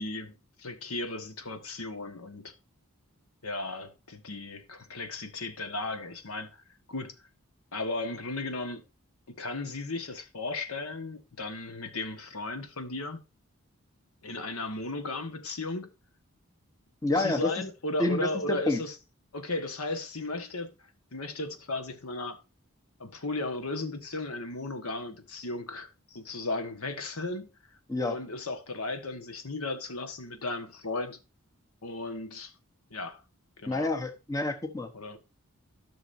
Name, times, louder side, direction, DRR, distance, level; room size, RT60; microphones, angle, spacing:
voice 1, 0.0-2.5 3.4-7.1 7.7-8.8 9.4-13.2 14.2-15.9 17.2-19.0 19.3-20.7 21.1-22.4 23.0-27.5 28.0-31.2 31.8-32.5 32.9-33.2 33.6-33.9 34.9-35.2, left 2 dB, 85° left, 1.4 m, -35 dB
voice 2, 17.0-17.5 18.0-18.8 27.9-28.2 33.7-34.9, left 2 dB, 15° left, 1.0 m, -28 dB
13.5 x 6.2 x 2.7 m
head